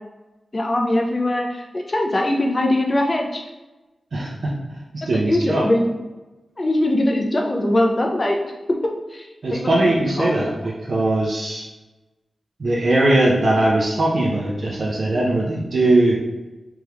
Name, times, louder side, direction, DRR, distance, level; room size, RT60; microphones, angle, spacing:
voice 1, 0.5-3.4 5.3-5.9 6.6-8.4 9.1-9.7 10.2-10.5, left 1 dB, 30° left, 1 dB, 0.6 m, -21 dB
voice 2, 4.1-4.5 5.1-5.6 9.4-11.6 12.6-16.2, right 2 dB, 60° right, -4 dB, 0.7 m, -20 dB
3.5 x 3.4 x 3.0 m, 1.1 s
wide cardioid pair, 125°, 0 cm